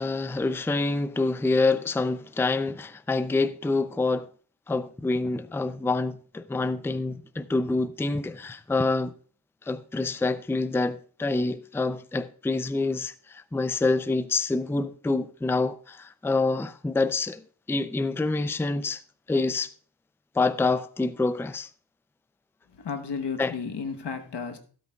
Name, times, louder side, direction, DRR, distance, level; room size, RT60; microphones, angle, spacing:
voice 1, 0.0-4.3 4.7-9.1 9.7-19.0 19.3-19.7 20.4-21.7 23.4-23.5, left 3 dB, 5° left, 0.4 m, -27 dB
voice 2, 22.8-24.6, left 5 dB, 80° left, 1.2 m, -33 dB
16.5 x 8.1 x 2.3 m
cardioid pair, 60°, 40 cm